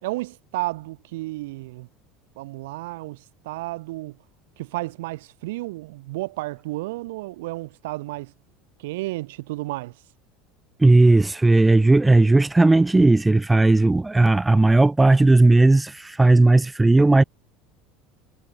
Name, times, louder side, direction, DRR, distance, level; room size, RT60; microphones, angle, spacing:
voice 1, 0.0-1.9 2.4-4.2 4.6-8.3 8.8-9.9, right 20 dB, 75° right, 3.6 m, -32 dB
voice 2, 10.8-17.2, right 2 dB, 10° right, 2.4 m, -16 dB
hypercardioid pair, 85°, 0 cm